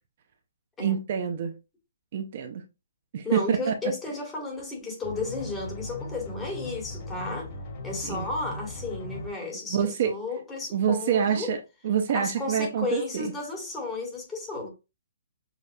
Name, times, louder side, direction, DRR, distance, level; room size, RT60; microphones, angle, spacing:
voice 1, 0.8-1.6 2.1-2.6 3.1-3.7 8.0-8.3 9.7-10.1 10.7-11.6 11.8-13.3, right 8 dB, 40° right, 0.5 m, -26 dB
voice 2, 3.2-7.5 7.8-11.5 12.1-14.7, left 3 dB, 10° left, 1.3 m, -33 dB
sound 1, 5.0-9.3, left 2 dB, 25° left, 1.6 m, -38 dB
6.5 x 2.4 x 2.6 m
hypercardioid pair, 170°, 0 cm